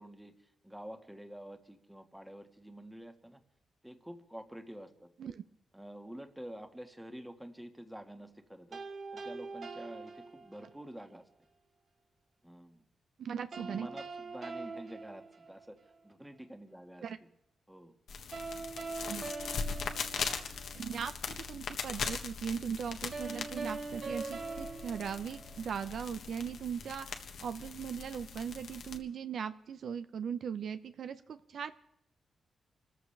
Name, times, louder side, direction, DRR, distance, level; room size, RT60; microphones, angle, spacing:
voice 1, 0.0-3.4 3.8-5.1 5.7-8.8 9.1-11.2 12.4-12.8 13.6-15.8 16.0-17.0 17.7-17.9, equal, 5° right, 6 dB, 1.7 m, -48 dB
sound 1, 8.7-10.9 13.5-15.9 18.3-20.8 23.1-25.9, right 4 dB, 50° right, 1.3 m, -43 dB
voice 2, 13.2-13.9 17.0-17.2 19.1-19.2 20.1-31.7, right 7 dB, 65° right, 11 dB, 0.7 m, -39 dB
sound 2, 18.1-29.0, left 5 dB, 75° left, 1.5 m, -40 dB
27.0 x 14.0 x 3.4 m, 0.77 s
cardioid pair, 120°, 0 cm